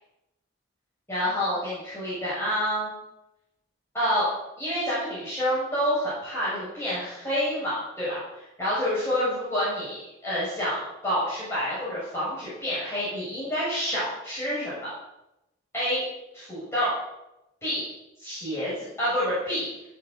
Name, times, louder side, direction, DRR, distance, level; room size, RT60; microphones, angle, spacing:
voice 1, 1.1-2.9 3.9-4.3 4.6-14.9 15.7-16.0 16.3-16.9 17.6-17.8 18.2-19.7, equal, 15° left, -10 dB, 7.0 m, -28 dB
18.0 x 7.2 x 6.9 m, 0.91 s
head